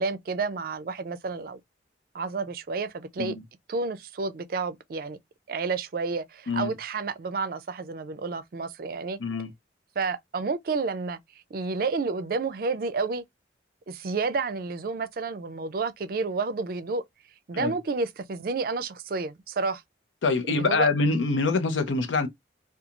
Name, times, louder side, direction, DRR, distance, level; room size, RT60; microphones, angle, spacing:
voice 1, 0.0-1.6 2.1-3.4 3.7-5.2 5.5-9.2 10.0-11.2 11.5-13.2 13.9-17.0 17.5-19.8 20.5-20.9, right 4 dB, 50° right, 0.4 m, -30 dB
voice 2, 9.2-9.5 17.5-17.7 20.2-22.3, left 3 dB, 90° left, 0.6 m, -25 dB
2.9 x 2.3 x 2.4 m
head